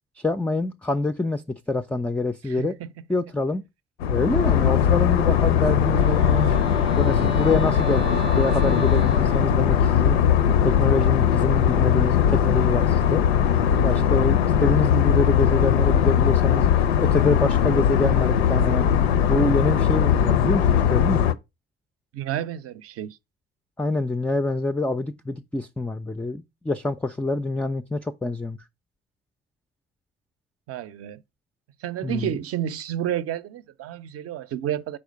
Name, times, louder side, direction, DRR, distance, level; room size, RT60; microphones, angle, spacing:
voice 1, 0.2-2.8 3.1-3.7 4.1-6.6 7.0-10.2 10.6-13.2 13.8-16.7 17.0-18.9 19.3-21.3 23.8-28.6 32.0-32.3, left 2 dB, 5° left, 0.3 m, -26 dB
voice 2, 2.6-2.9 22.1-23.2 30.7-31.2 31.8-35.0, right 11 dB, 50° right, 0.6 m, -30 dB
sound 1, 4.0-21.3, left 9 dB, 80° left, 0.5 m, -20 dB
Wind instrument woodwind instrument, 5.7-10.4, right 2 dB, 85° right, 0.8 m, -34 dB
4.8 x 4.2 x 5.2 m
figure-of-eight pair, 45°, 32 cm